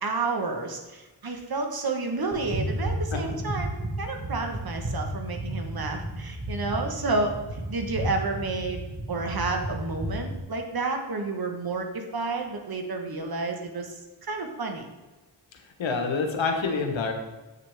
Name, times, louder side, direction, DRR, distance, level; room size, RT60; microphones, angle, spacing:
voice 1, 0.0-14.8, right 3 dB, 50° right, 4 dB, 1.3 m, -30 dB
sound 1, 2.3-10.4, right 1 dB, 35° right, 1.3 m, -33 dB
voice 2, 15.8-17.1, left 4 dB, 80° left, 4 dB, 1.2 m, -26 dB
8.3 x 6.6 x 3.4 m, 1.1 s
wide cardioid pair, 80°, 45 cm